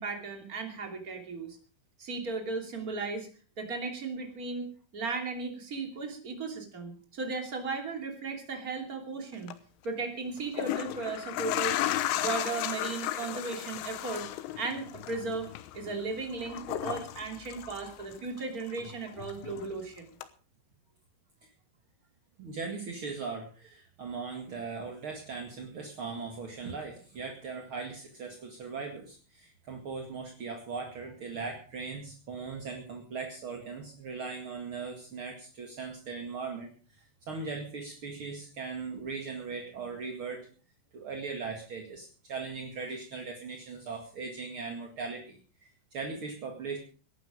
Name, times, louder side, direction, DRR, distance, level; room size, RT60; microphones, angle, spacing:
voice 1, 0.0-1.6 2.0-3.3 3.6-4.7 4.9-9.5 9.8-11.8 12.1-14.2 14.6-15.5 15.7-20.1, right 3 dB, 25° right, 4 dB, 2.2 m, -36 dB
sound 1, 9.3-9.5 10.4-18.4 18.7-19.8 20.2-20.3, left 13 dB, 85° left, 3.5 m, -35 dB
voice 2, 22.4-40.5 40.9-46.8, right 4 dB, 50° right, 2 dB, 1.5 m, -39 dB
19.0 x 11.5 x 5.0 m, 0.39 s
omnidirectional pair, 5.6 m